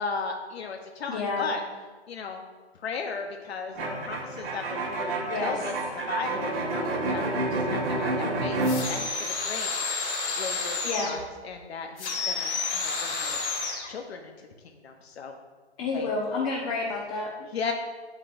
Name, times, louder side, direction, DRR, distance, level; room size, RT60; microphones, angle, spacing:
voice 1, 0.0-1.6 2.1-2.4 2.8-5.1 5.4-8.6 8.9-9.7 10.4-11.2 11.4-13.4 13.9-14.5 14.8-15.3 15.9-16.1 17.5-17.7, left 5 dB, 65° left, 4 dB, 0.9 m, -36 dB
voice 2, 1.1-1.5 5.3-5.6 10.8-11.2 15.8-17.5, left 3 dB, 30° left, -2 dB, 1.0 m, -30 dB
sound 1, 3.7-8.8, right 2 dB, 55° right, 2.2 m, -29 dB
sound 2, 8.6-11.2 12.0-13.9, left 4 dB, 80° left, 2.1 m, -30 dB
8.5 x 8.3 x 2.5 m, 1.4 s
hypercardioid pair, 145°, 34 cm